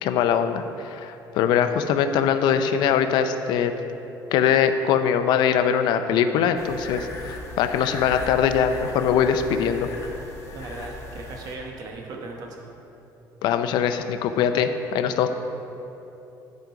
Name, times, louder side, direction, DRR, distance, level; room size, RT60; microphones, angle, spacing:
voice 1, 0.0-3.7 4.3-9.9 13.4-15.3, left 8 dB, 75° left, 9 dB, 0.5 m, -22 dB
sound 1, 6.6-11.6, left 2 dB, 40° left, 1.1 m, -37 dB
voice 2, 10.5-12.7, right 3 dB, 55° right, 1 dB, 1.1 m, -37 dB
11.0 x 5.2 x 4.7 m, 3.0 s
cardioid pair, 160°, 8 cm